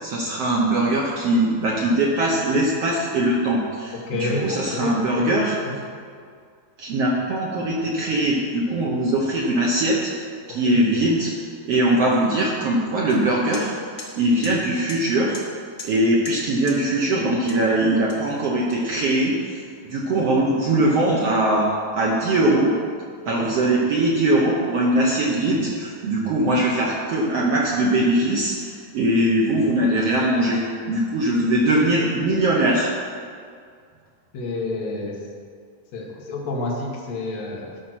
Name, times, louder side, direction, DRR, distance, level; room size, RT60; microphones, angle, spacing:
voice 1, 0.0-5.5 6.8-10.1 10.5-11.3 11.6-13.7 14.1-15.4 15.8-21.7 21.9-22.7 23.3-32.9, right 1 dB, 75° right, -3 dB, 1.4 m, -21 dB
voice 2, 4.1-5.8 10.5-10.8 23.4-23.5 34.3-35.2 35.9-37.8, left 2 dB, 55° left, -2 dB, 2.4 m, -29 dB
sound 1, 13.1-13.2 13.5-13.6 14.0-14.1 14.4-14.5 14.9-15.0 15.3-15.4 15.8-15.9 16.2-16.4 16.7-16.8 17.5-17.7 18.1-19.1, left 3 dB, 70° left, 0.8 m, -38 dB
13.0 x 5.8 x 6.0 m, 2.1 s
omnidirectional pair, 4.2 m